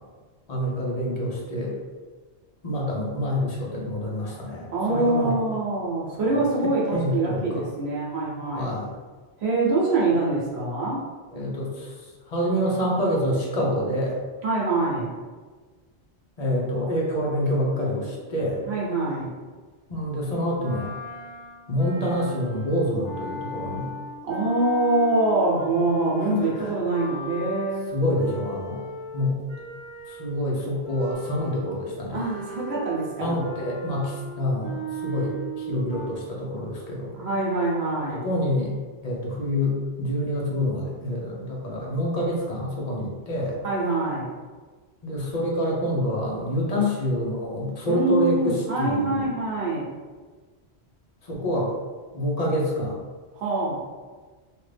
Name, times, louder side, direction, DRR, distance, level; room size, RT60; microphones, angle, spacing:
voice 1, 0.5-1.7 2.6-5.3 6.9-7.7 8.5-8.9 11.3-14.2 16.4-18.7 19.9-20.9 21.7-23.9 26.2-26.7 27.9-28.8 29.1-29.3 30.1-32.2 33.2-37.1 38.1-38.7 39.0-43.6 45.0-49.3 51.2-51.7 52.1-53.0, equal, 40° left, -3 dB, 0.7 m, -27 dB
voice 2, 4.7-8.7 9.4-11.0 14.4-15.1 18.6-19.3 24.2-27.9 32.1-33.4 37.1-38.3 43.6-44.3 47.9-49.9 53.3-53.8, right 2 dB, 65° right, -4 dB, 1.1 m, -25 dB
sound 1, 20.6-30.4 30.8-36.1, right 2 dB, 35° right, 0.6 m, -38 dB
2.9 x 2.4 x 3.2 m, 1.4 s
omnidirectional pair, 1.2 m